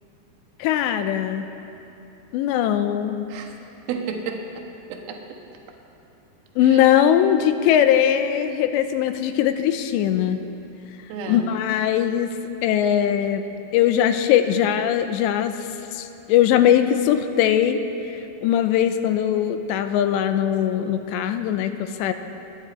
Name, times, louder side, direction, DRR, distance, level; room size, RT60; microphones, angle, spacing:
voice 1, 0.6-1.5 2.3-3.3 6.6-10.4 11.3-12.3 12.6-13.4 13.7-17.8 18.1-22.1, left 10 dB, 85° left, 9 dB, 2.8 m, -20 dB
voice 2, 3.9-5.4 6.6-6.9 11.1-11.5, right 5 dB, 65° right, 2 dB, 2.9 m, -32 dB
29.0 x 9.9 x 4.3 m, 2.8 s
omnidirectional pair, 5.1 m